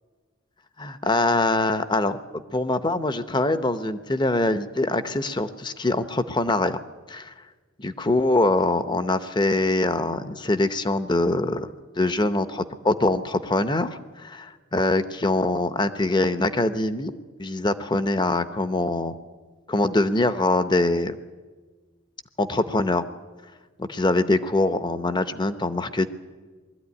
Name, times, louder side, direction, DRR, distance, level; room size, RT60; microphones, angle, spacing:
voice 1, 0.8-6.8 7.1-7.3 7.8-11.7 12.0-19.1 19.7-21.1 22.4-23.0 23.8-26.1, left 2 dB, 20° left, 12 dB, 0.8 m, -23 dB
21.0 x 13.5 x 9.6 m, 1.4 s
head